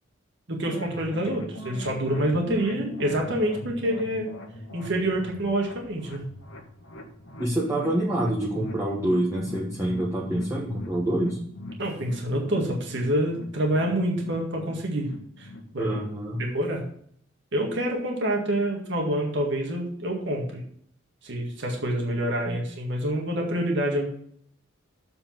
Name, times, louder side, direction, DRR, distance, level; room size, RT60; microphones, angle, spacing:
voice 1, 0.5-4.3 4.7-6.2 11.8-15.1 15.4-15.5 15.7-15.9 16.3-16.8 17.5-20.6 21.2-24.0, right 1 dB, 60° right, 0 dB, 1.8 m, -27 dB
sound 1, 0.7-16.6, left 1 dB, 70° left, 1.6 m, -40 dB
voice 2, 7.4-11.4 15.8-16.4 22.5-22.6, right 1 dB, 15° right, -4 dB, 1.3 m, -27 dB
7.6 x 5.1 x 7.3 m, 0.65 s
head